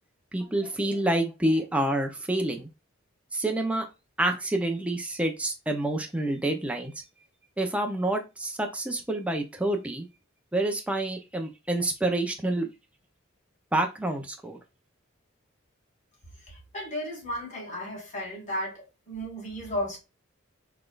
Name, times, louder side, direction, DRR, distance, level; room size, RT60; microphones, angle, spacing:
voice 1, 0.3-2.7 3.3-3.9 4.2-6.9 7.6-10.1 10.5-12.7 13.7-14.6, right 1 dB, 5° right, 0.6 m, -28 dB
voice 2, 16.5-20.0, equal, 35° left, 2.3 m, -34 dB
4.1 x 3.3 x 2.4 m
head